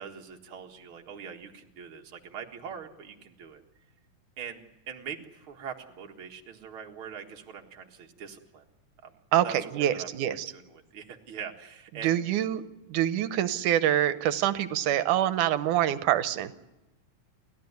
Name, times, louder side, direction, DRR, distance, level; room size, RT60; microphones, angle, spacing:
voice 1, 0.0-3.6 4.4-8.6 9.0-9.1 9.4-12.2, right 7 dB, 50° right, 3 dB, 2.3 m, -42 dB
voice 2, 9.7-10.5 12.0-12.6 12.9-16.7, right 12 dB, 85° right, 12 dB, 2.5 m, -25 dB
30.0 x 14.0 x 9.5 m, 1.0 s
omnidirectional pair, 3.6 m